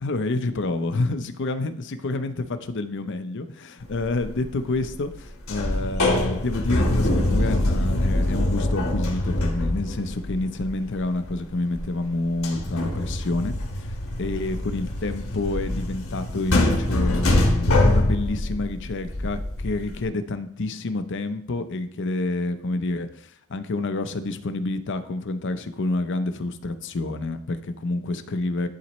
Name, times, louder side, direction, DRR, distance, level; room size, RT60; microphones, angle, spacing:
voice 1, 0.0-28.7, left 2 dB, 60° left, 10 dB, 0.6 m, -28 dB
sound 1, 4.0-4.4 4.7-5.2 5.5-12.1 12.3-20.0, left 1 dB, 75° left, 1.3 m, -24 dB
11.5 x 4.2 x 3.1 m, 0.72 s
head